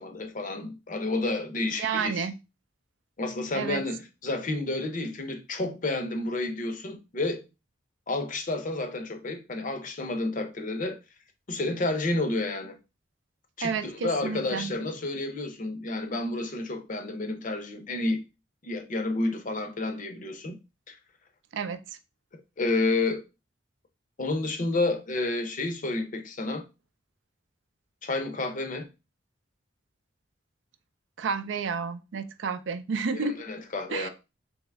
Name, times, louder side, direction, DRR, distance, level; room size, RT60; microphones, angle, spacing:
voice 1, 0.0-2.2 3.2-7.4 8.1-11.0 11.5-12.8 13.6-18.2 18.6-20.6 20.9-21.0 22.6-23.2 24.2-26.6 28.0-28.9 33.1-34.1, left 2 dB, 45° left, 0.6 m, -30 dB
voice 2, 1.8-2.4 3.5-3.8 13.6-14.7 21.5-21.8 31.2-33.4 33.9-34.1, right 5 dB, 75° right, 0.4 m, -30 dB
3.5 x 3.0 x 3.3 m
head